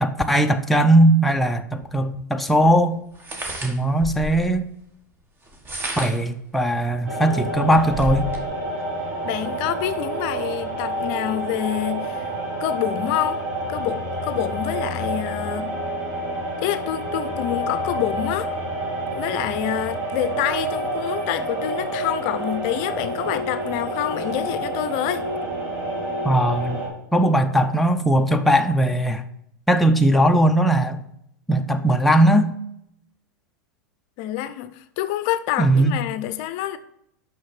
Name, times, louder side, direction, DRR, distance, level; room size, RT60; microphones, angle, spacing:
voice 1, 0.0-3.0 3.6-4.7 6.0-8.3 26.2-26.8 27.1-29.2 29.7-31.0 31.5-32.6 35.6-36.0, right 1 dB, ahead, 0.5 m, -19 dB
sound 1, 1.8-1.9 3.1-4.5 5.5-6.3 6.9-7.0 7.4-8.5, equal, 20° right, 1.5 m, -31 dB
sound 2, 7.1-26.9, right 1 dB, 35° right, 2.8 m, -28 dB
voice 2, 9.2-12.3 12.6-13.4 13.7-15.8 16.6-18.5 19.1-25.3 34.2-36.8, left 12 dB, 45° left, 0.6 m, -27 dB
6.4 x 5.7 x 5.9 m
hypercardioid pair, 100°, 10 cm